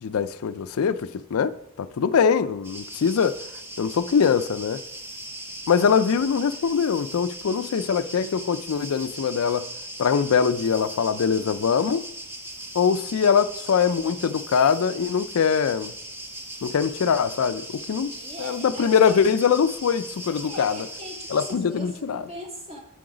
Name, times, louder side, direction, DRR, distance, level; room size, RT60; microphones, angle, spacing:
voice 1, 0.0-1.5 1.8-3.4 3.8-4.8 5.7-9.7 10.0-12.0 12.7-15.9 16.6-18.1 18.4-20.9 21.3-22.2, left 6 dB, 70° left, 0.4 m, -22 dB
sound 1, 2.6-21.5, right 1 dB, 10° right, 1.1 m, -39 dB
voice 2, 18.1-19.2 20.3-22.8, equal, 30° right, 2.3 m, -40 dB
8.4 x 7.8 x 4.9 m
head